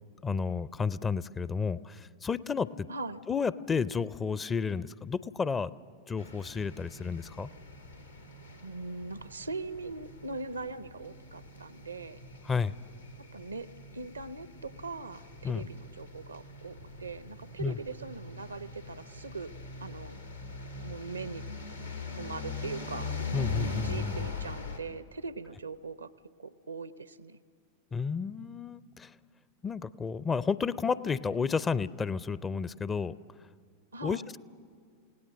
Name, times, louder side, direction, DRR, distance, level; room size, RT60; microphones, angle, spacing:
voice 1, 0.2-2.9 3.3-5.8 6.1-7.5 12.4-12.7 15.4-15.7 17.6-17.8 23.3-24.3 27.9-29.1 29.6-33.1 34.0-34.4, left 5 dB, 20° left, 18 dB, 0.5 m, -31 dB
voice 2, 2.9-3.2 8.6-12.2 13.3-13.7 13.9-19.5 19.8-20.2 20.8-21.4 22.1-23.2 23.8-26.1 26.4-27.4 33.9-34.3, right 3 dB, 80° right, 16 dB, 0.6 m, -41 dB
sound 1, 6.2-24.8, left 3 dB, 90° left, 2.0 m, -42 dB
28.5 x 18.0 x 6.4 m, 2.3 s
figure-of-eight pair, 90°, 0 cm